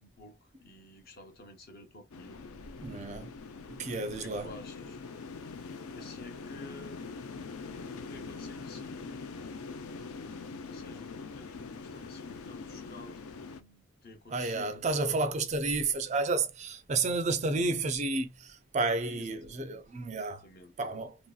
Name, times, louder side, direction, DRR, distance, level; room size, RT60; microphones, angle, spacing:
voice 1, 0.0-2.4 4.1-5.0 5.9-7.1 8.1-9.4 10.7-14.9 15.4-15.5 15.8-16.1 19.0-19.9 20.1-20.7, left 2 dB, 45° left, 0.7 m, -51 dB
sound 1, 2.1-13.6, left 4 dB, 85° left, 0.4 m, -43 dB
voice 2, 2.8-3.3 3.7-4.5 14.3-20.5 20.8-21.2, right 3 dB, 35° right, 0.4 m, -31 dB
3.0 x 2.7 x 2.3 m
head